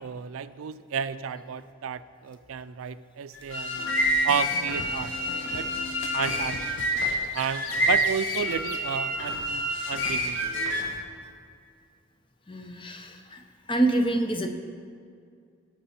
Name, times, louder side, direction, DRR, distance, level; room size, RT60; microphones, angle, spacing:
voice 1, 0.0-3.8 4.2-5.1 5.5-5.7 6.1-6.6 7.3-10.5, right 7 dB, 85° right, 13 dB, 0.4 m, -32 dB
sound 1, 3.3-11.0, equal, 65° left, 1.8 m, -28 dB
sound 2, 3.7-8.8, left 3 dB, 85° left, 0.7 m, -40 dB
voice 2, 12.5-13.4 13.7-14.5, right 2 dB, 25° left, 5 dB, 0.7 m, -27 dB
18.0 x 6.0 x 4.3 m, 2.3 s
head